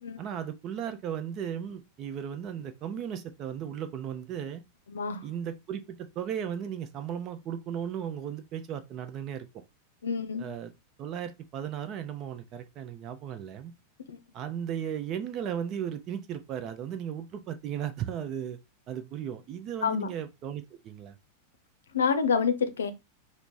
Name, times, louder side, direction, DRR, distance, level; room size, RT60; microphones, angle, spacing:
voice 1, 0.2-4.6 5.2-9.5 10.4-10.7 11.0-13.7 14.3-18.6 18.9-21.1, right 9 dB, 35° right, 0.6 m, -36 dB
voice 2, 4.9-5.3 10.0-10.4 14.1-14.2 19.8-20.1 21.9-22.9, left 6 dB, 65° left, 0.6 m, -27 dB
4.5 x 2.1 x 4.0 m
figure-of-eight pair, 90°, 0 cm